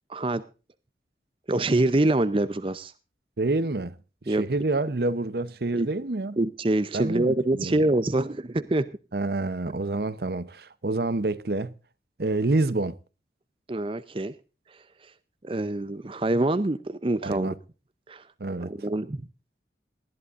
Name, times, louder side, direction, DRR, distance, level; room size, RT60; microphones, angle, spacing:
voice 1, 0.1-0.4 1.5-2.9 4.3-4.4 5.7-5.9 6.4-8.9 13.7-14.3 14.7-14.8 15.4-17.5 18.1-18.2 18.6-19.2, right 2 dB, 30° right, 0.6 m, -25 dB
voice 2, 3.4-4.0 4.3-6.4 6.9-7.8 9.1-11.7 12.2-13.0 17.2-17.5 18.4-18.7, right 2 dB, 60° right, 0.8 m, -27 dB
19.5 x 13.5 x 2.5 m
head